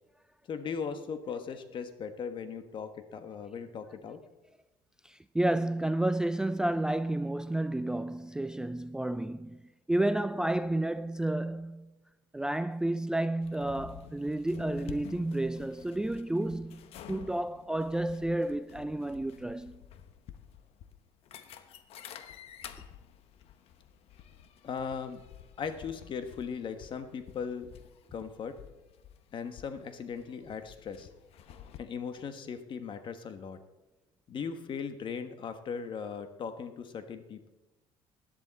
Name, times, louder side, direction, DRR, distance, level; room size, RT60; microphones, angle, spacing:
voice 1, 0.4-4.2 24.6-25.2 25.6-27.7 28.1-28.6 29.3-31.1 31.8-33.6 34.3-37.5, left 6 dB, 50° left, 1.3 m, -38 dB
voice 2, 5.0-9.6 9.9-11.9 12.3-16.8 17.1-19.8, right 1 dB, 5° right, 0.4 m, -31 dB
sound 1, 13.4-31.8, left 9 dB, 65° left, 1.0 m, -51 dB
16.5 x 10.5 x 4.1 m
supercardioid pair, 95°, 11 cm